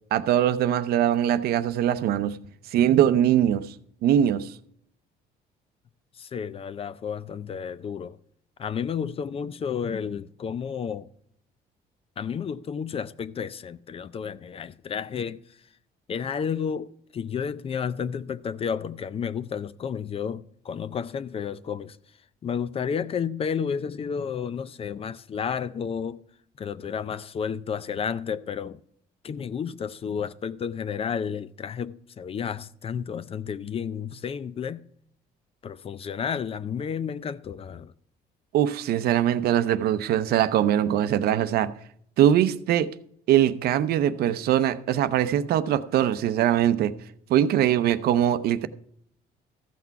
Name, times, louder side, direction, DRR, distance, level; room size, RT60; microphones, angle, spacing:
voice 1, 0.1-2.4 2.7-3.7 4.0-4.5 38.5-41.7 42.2-43.0 43.3-46.9 47.3-48.7, right 11 dB, 70° right, 0.6 m, -22 dB
voice 2, 6.2-8.2 8.6-11.1 12.2-15.4 16.1-22.0 22.4-26.2 26.6-28.8 29.2-34.8 35.6-37.9, left 7 dB, 35° left, 0.4 m, -31 dB
14.0 x 5.9 x 4.6 m
cardioid pair, 110°, 17 cm